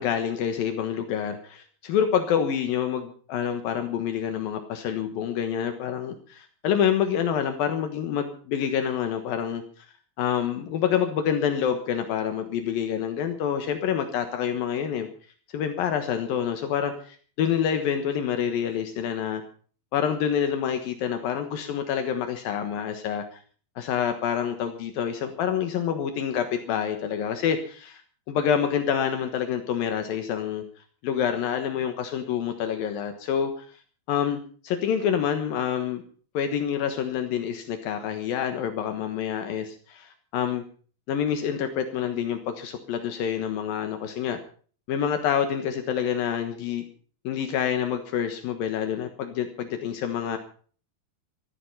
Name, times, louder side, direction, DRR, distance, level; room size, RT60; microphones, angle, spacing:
voice 1, 0.0-9.6 10.2-15.1 15.5-19.4 19.9-23.4 23.8-28.0 28.3-30.6 31.0-33.7 34.1-36.0 36.3-40.6 41.1-44.4 44.9-46.8 47.2-50.4, left 8 dB, 75° left, 7 dB, 3.1 m, -27 dB
15.0 x 14.0 x 5.4 m, 0.43 s
omnidirectional pair, 4.3 m